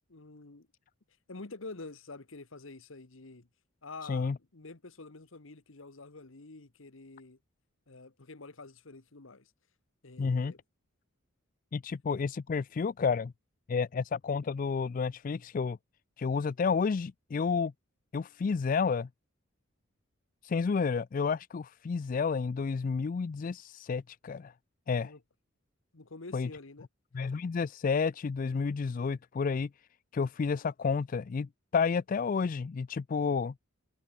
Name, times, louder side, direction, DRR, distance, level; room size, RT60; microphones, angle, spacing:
voice 1, 0.1-0.7 1.3-3.5 3.8-7.4 7.9-9.5 10.0-10.6 25.0-25.2 25.9-26.9, left 3 dB, 70° left, 1.3 m, -47 dB
voice 2, 10.2-10.5 11.7-13.3 13.7-15.8 16.2-17.7 18.1-19.1 20.4-24.5 24.9-25.1 26.3-26.5 27.1-29.7 30.1-31.5 31.7-33.5, left 5 dB, 40° left, 0.3 m, -30 dB
head